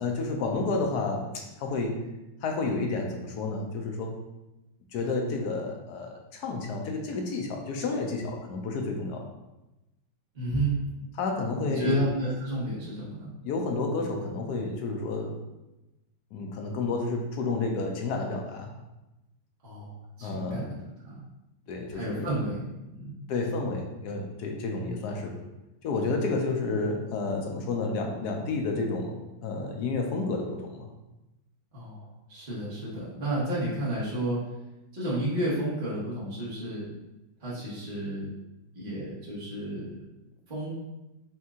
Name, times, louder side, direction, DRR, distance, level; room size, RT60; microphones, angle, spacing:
voice 1, 0.0-2.0 2.4-4.2 4.9-9.2 11.2-12.0 13.4-15.4 16.3-18.7 20.2-20.6 21.7-22.3 23.3-25.4 25.8-30.9, left 3 dB, 70° left, 2 dB, 1.0 m, -30 dB
voice 2, 10.3-10.7 11.6-13.3 19.6-20.7 21.0-21.2 21.9-22.6 22.9-23.3 24.7-24.9 31.7-34.4 34.9-36.9 37.4-38.3 38.7-39.9 40.5-40.7, right 1 dB, 30° right, -9 dB, 1.1 m, -31 dB
4.3 x 2.7 x 3.6 m, 0.98 s
omnidirectional pair, 2.1 m